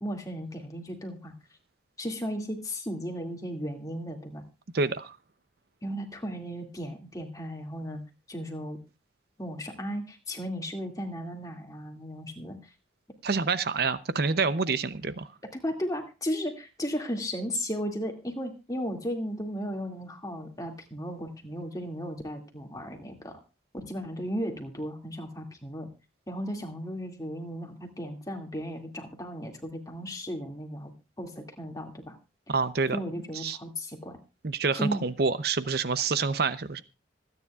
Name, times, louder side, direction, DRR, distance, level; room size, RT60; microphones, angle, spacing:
voice 1, 0.0-1.3 2.0-4.4 5.8-8.0 8.3-8.8 9.4-12.7 15.5-23.4 23.7-25.9 26.3-30.9 31.2-32.2 32.9-34.2 34.7-35.1, equal, 20° left, 3 dB, 2.2 m, -35 dB
voice 2, 4.7-5.2 13.2-15.3 32.5-33.0 33.3-33.6 34.4-36.8, right 4 dB, 55° right, 13 dB, 0.7 m, -27 dB
25.5 x 9.7 x 2.4 m, 0.29 s
head